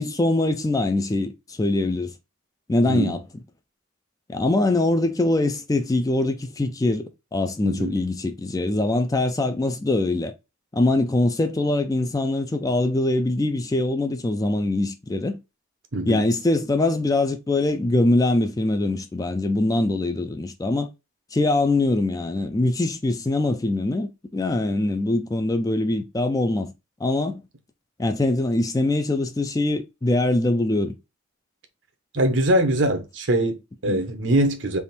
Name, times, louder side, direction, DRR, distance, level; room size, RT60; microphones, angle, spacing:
voice 1, 0.0-2.1 2.7-3.2 4.3-10.3 10.7-15.4 16.1-20.9 21.3-26.7 27.0-27.4 28.0-31.0 33.9-34.0, left 2 dB, 15° left, 0.3 m, -23 dB
voice 2, 2.8-3.2 7.6-7.9 15.9-16.3 32.1-34.8, right 1 dB, 65° right, 0.8 m, -23 dB
3.5 x 2.5 x 4.1 m
head